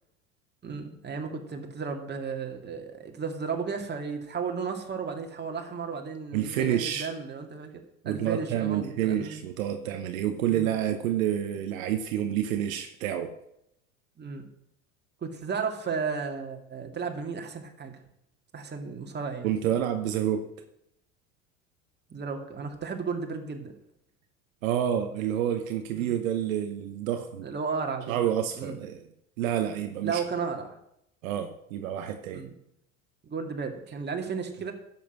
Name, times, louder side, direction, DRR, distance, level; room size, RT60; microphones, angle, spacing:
voice 1, 0.6-7.7 8.0-9.4 10.5-10.7 14.2-14.5 15.2-18.0 18.5-19.5 22.1-23.7 25.9-26.2 27.4-28.2 28.5-28.8 30.0-30.8 32.3-32.5 33.2-34.7, right 5 dB, 25° right, 3 dB, 2.3 m, -34 dB
voice 2, 6.3-7.1 8.0-13.3 19.4-20.4 24.6-27.5 28.1-29.0 29.4-30.2 31.2-32.4, right 10 dB, 70° right, 7 dB, 1.1 m, -28 dB
11.0 x 7.5 x 6.1 m, 0.79 s
hypercardioid pair, 75°, 41 cm